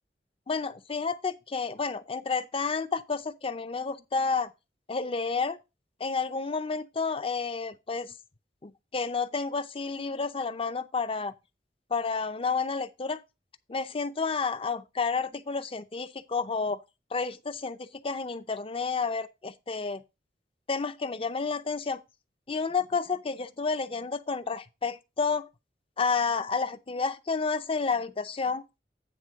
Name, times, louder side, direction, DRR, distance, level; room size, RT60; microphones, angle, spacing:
voice 1, 0.5-4.5 4.9-5.6 6.0-8.1 8.6-11.3 11.9-13.2 13.7-16.8 17.1-20.0 20.7-22.0 22.5-25.5 26.0-28.6, left 4 dB, 30° left, 0.6 m, -30 dB
9.2 x 3.6 x 6.3 m
head